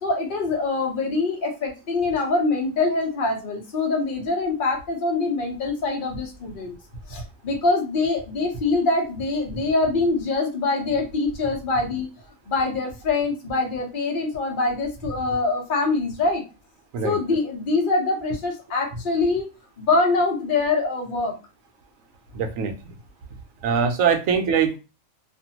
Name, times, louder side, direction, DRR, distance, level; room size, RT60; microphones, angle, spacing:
voice 1, 0.0-6.7 7.1-12.1 12.5-16.4 17.0-19.5 19.8-21.3, left 3 dB, 45° left, 1 dB, 0.8 m, -24 dB
voice 2, 22.3-23.0 23.6-24.8, right 6 dB, 75° right, 6 dB, 1.0 m, -22 dB
2.6 x 2.3 x 2.8 m, 0.29 s
omnidirectional pair, 1.5 m